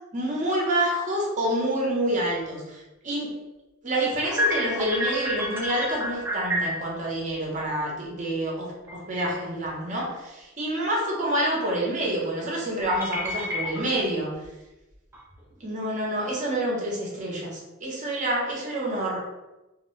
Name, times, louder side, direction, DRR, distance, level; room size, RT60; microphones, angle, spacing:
voice 1, 0.1-3.3 3.8-14.3 15.6-19.2, right 1 dB, 40° right, -3 dB, 0.7 m, -27 dB
sound 1, 4.1-6.9 8.9-9.0 9.2-9.7 12.9-14.0 14.4-14.5 15.1-15.6, left 1 dB, 10° right, 0.4 m, -29 dB
2.3 x 2.1 x 3.0 m, 1.0 s
head